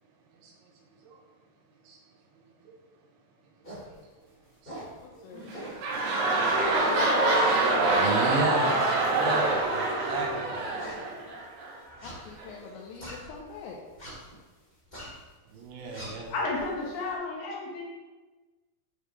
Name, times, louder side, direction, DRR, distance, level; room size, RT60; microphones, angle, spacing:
voice 1, 0.8-1.2 1.9-2.0 2.3-2.7 3.6-4.0 4.6-4.9 5.1-6.2 7.8-10.8 15.5-16.3, right 2 dB, 90° right, -1 dB, 3.4 m, -35 dB
sound 1, 3.6-3.9 4.4-5.0 5.5-5.9 6.5-7.0 7.4-11.4 11.9-13.5 13.9-14.3 14.7-15.2 15.6-17.1, right 1 dB, 30° left, 0.8 m, -43 dB
voice 2, 5.2-5.6 5.9-6.9 12.0-13.8, left 5 dB, 90° left, -2 dB, 3.0 m, -45 dB
sound 2, 5.4-11.7 12.4-12.5, right 2 dB, 70° right, 3.1 m, -25 dB
voice 3, 16.3-17.8, left 3 dB, 70° left, -3 dB, 3.0 m, -32 dB
8.8 x 5.2 x 3.3 m, 1.3 s
omnidirectional pair, 5.0 m